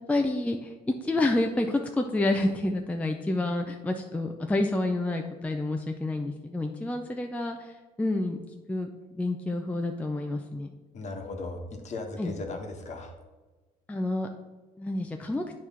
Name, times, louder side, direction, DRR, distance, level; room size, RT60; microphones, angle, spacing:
voice 1, 0.1-8.4 8.7-8.9 9.1-10.7 12.2-12.3 13.9-14.3 14.8-15.4, left 2 dB, 10° left, 4 dB, 0.4 m, -29 dB
voice 2, 10.9-13.1, left 3 dB, 45° left, 4 dB, 1.2 m, -37 dB
8.9 x 3.2 x 5.6 m, 1.2 s
cardioid pair, 110°, 17 cm